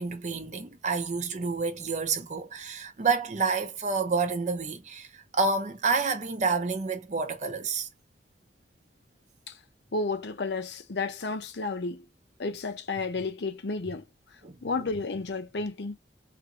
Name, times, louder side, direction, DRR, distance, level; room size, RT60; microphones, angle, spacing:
voice 1, 0.0-7.9 14.4-14.6, right 4 dB, 40° right, 0.6 m, -29 dB
voice 2, 9.9-12.1 12.4-14.0 14.6-16.0, left 3 dB, 70° left, 0.7 m, -32 dB
3.4 x 2.5 x 2.9 m
head